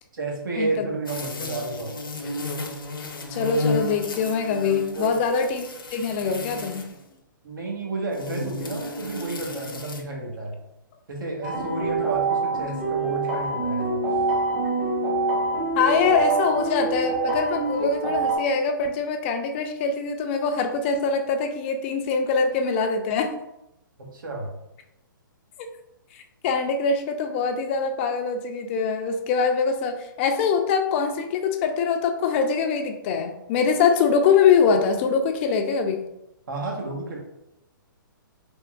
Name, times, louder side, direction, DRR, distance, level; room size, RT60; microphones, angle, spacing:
voice 1, 0.1-2.0 4.9-5.2 7.4-10.6 11.1-14.0 14.6-14.7 24.0-24.5 36.5-37.2, right 2 dB, 70° right, 0 dB, 1.1 m, -31 dB
sound 1, 1.0-7.0 8.1-10.0, left 2 dB, 90° left, 0.6 m, -33 dB
voice 2, 3.3-6.8 15.7-23.3 26.1-36.0, left 5 dB, 35° left, 6 dB, 0.4 m, -23 dB
sound 2, 11.4-18.4, right 3 dB, 20° right, 1.2 m, -25 dB
3.5 x 3.0 x 2.3 m, 0.85 s
hypercardioid pair, 135°, 11 cm